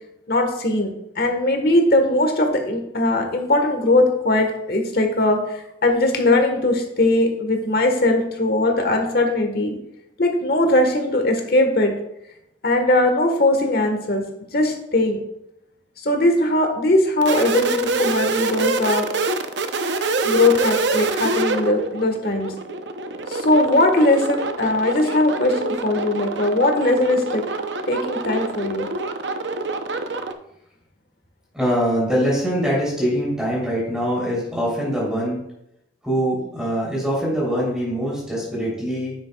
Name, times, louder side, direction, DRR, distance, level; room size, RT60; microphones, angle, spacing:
voice 1, 0.3-9.7 10.2-11.9 12.6-14.2 14.5-15.2 16.0-19.0 20.2-22.5 23.3-27.4 27.9-28.9, left 2 dB, 60° left, 4 dB, 1.4 m, -20 dB
sound 1, 17.2-30.3, right 3 dB, 85° right, 0.7 m, -26 dB
voice 2, 31.5-35.4 36.0-39.2, equal, 5° right, -6 dB, 3.2 m, -23 dB
9.6 x 8.7 x 2.3 m, 0.79 s
head